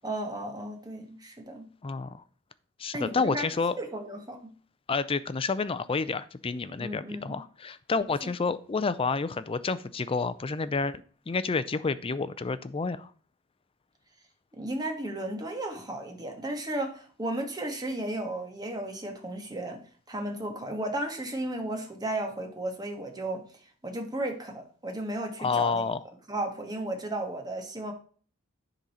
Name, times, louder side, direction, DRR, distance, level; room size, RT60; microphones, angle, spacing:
voice 1, 0.0-1.6 2.9-3.5 3.8-4.4 6.8-7.4 14.6-19.8 20.1-23.4 23.8-25.9 26.3-27.9, right 1 dB, 20° right, 3 dB, 1.6 m, -34 dB
voice 2, 1.8-2.2 2.8-3.7 4.9-13.1 25.4-26.0, left 4 dB, 25° left, 15 dB, 0.4 m, -29 dB
10.0 x 3.9 x 5.6 m, 0.43 s
head